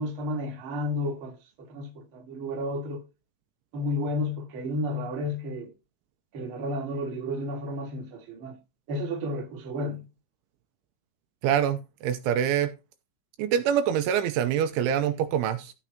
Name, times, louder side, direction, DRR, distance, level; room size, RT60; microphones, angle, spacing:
voice 1, 0.0-3.0 3.7-5.7 6.3-8.6 8.9-10.1, left 1 dB, 40° right, 1.9 m, -32 dB
voice 2, 11.4-12.7 13.4-15.7, right 9 dB, 85° right, 3.0 m, -25 dB
15.0 x 6.1 x 2.9 m
omnidirectional pair, 5.8 m